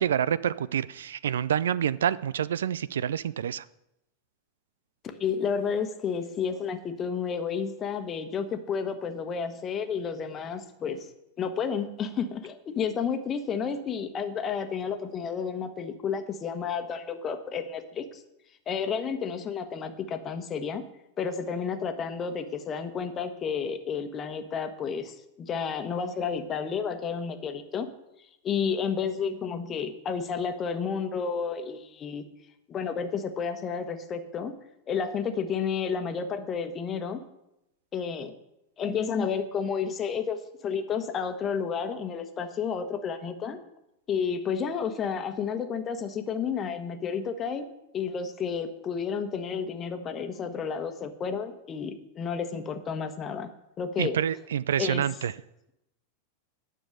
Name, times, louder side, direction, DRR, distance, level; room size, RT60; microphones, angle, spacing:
voice 1, 0.0-3.6 54.0-55.3, right 9 dB, 65° right, 18 dB, 0.3 m, -27 dB
voice 2, 5.0-11.1 11.4-18.2 18.7-20.8 21.2-27.9 28.4-32.3 32.7-34.5 34.9-37.2 37.9-38.3 38.8-43.6 44.1-47.7 47.9-53.5 53.8-54.2 54.8-55.0, left 6 dB, 25° left, 8 dB, 1.2 m, -31 dB
10.5 x 6.9 x 6.9 m, 0.87 s
figure-of-eight pair, 90°, 0 cm